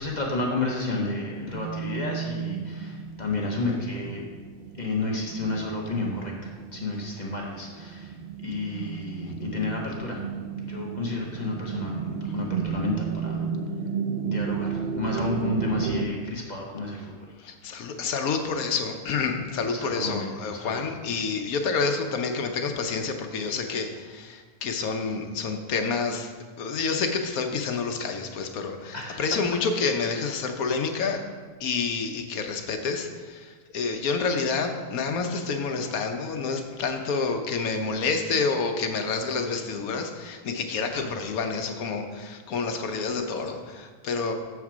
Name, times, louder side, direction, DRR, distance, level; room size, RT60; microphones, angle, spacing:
voice 1, 0.0-4.2 4.8-8.1 8.4-10.2 10.7-13.5 14.2-17.1 19.7-20.8 28.9-29.2 40.9-41.1, left 2 dB, 35° left, -1 dB, 1.1 m, -31 dB
sound 1, 1.3-16.1, right 7 dB, 85° right, 0.5 m, -33 dB
voice 2, 17.4-26.3 26.6-31.2 31.6-44.3, left 4 dB, 70° left, 5 dB, 1.2 m, -28 dB
7.3 x 4.7 x 6.0 m, 1.4 s
omnidirectional pair, 1.6 m